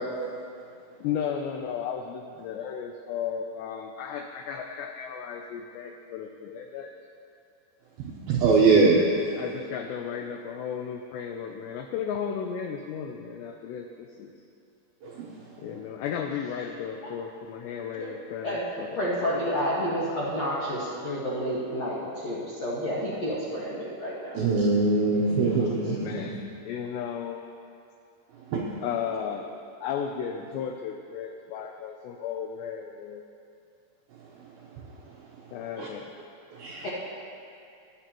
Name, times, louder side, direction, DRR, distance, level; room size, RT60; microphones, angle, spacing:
voice 1, 1.0-6.9 9.4-14.3 15.6-18.9 25.5-26.4 26.6-27.4 28.8-33.2 35.5-36.2, left 7 dB, 90° left, 4 dB, 2.4 m, -34 dB
voice 2, 8.3-9.0 15.0-15.3 24.4-26.3 28.5-28.7 35.8-35.9 36.5-36.9, right 4 dB, 80° right, -4 dB, 2.2 m, -22 dB
voice 3, 18.9-24.4 25.2-26.0 36.8-36.9, equal, 70° left, -8 dB, 1.5 m, -30 dB
19.5 x 10.5 x 3.0 m, 2.5 s
omnidirectional pair, 5.6 m